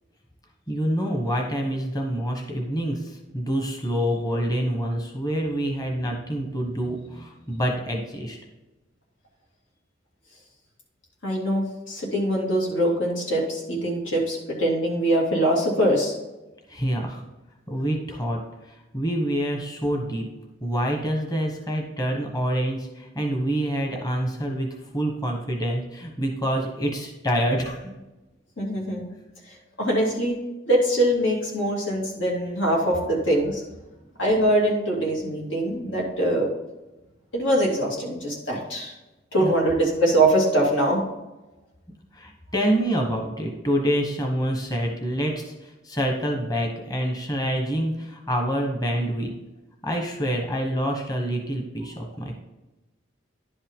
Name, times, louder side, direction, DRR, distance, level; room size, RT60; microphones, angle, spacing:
voice 1, 0.7-8.4 16.7-17.2 17.7-20.3 20.6-24.7 24.9-27.9 39.4-39.5 42.1-49.3 49.8-52.3, equal, 20° left, 1 dB, 1.1 m, -27 dB
voice 2, 11.2-16.2 28.6-29.1 29.8-30.4 30.7-33.6 34.2-36.5 37.3-38.9 39.3-41.0, right 1 dB, 90° left, -2 dB, 2.6 m, -23 dB
10.5 x 5.4 x 3.7 m, 1.1 s
head